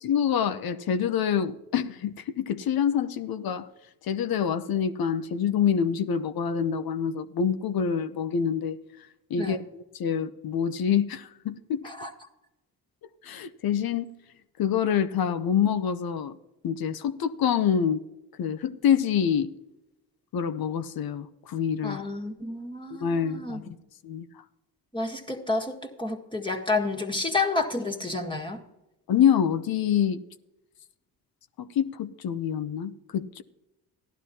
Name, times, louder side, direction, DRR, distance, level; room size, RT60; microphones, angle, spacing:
voice 1, 0.0-3.7 4.0-8.8 9.3-11.9 13.2-14.1 14.6-16.4 16.6-18.0 18.4-19.5 20.3-22.0 22.9-23.8 24.0-24.3 29.1-30.2 31.6-33.4, left 8 dB, 60° left, 0.8 m, -26 dB
voice 2, 21.8-23.7 24.9-28.6, left 3 dB, 10° left, 1.7 m, -30 dB
15.5 x 11.5 x 2.8 m
supercardioid pair, 55°, 42 cm